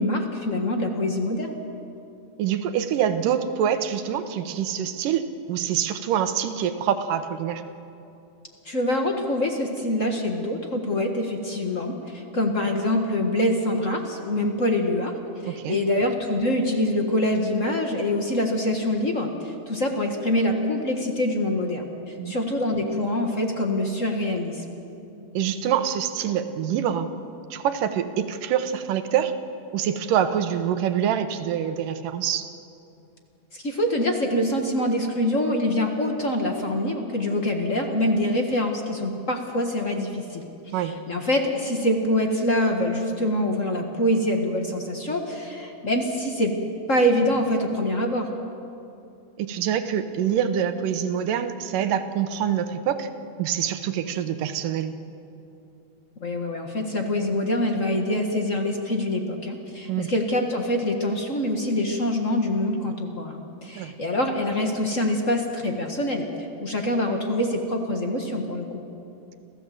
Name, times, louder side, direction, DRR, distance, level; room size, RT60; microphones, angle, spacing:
voice 1, 0.0-1.6 8.6-24.6 33.5-40.5 40.8-46.5 46.9-48.3 56.2-66.3 66.6-68.8, left 1 dB, 40° left, 3 dB, 1.1 m, -25 dB
voice 2, 2.4-7.6 15.4-15.8 22.2-22.4 25.3-27.1 27.5-29.4 29.7-32.5 40.7-40.9 49.4-53.1 53.4-55.0 59.9-60.1 63.8-63.9, right 9 dB, 90° right, 9 dB, 2.7 m, -25 dB
28.0 x 15.5 x 7.7 m, 2.7 s
omnidirectional pair, 3.7 m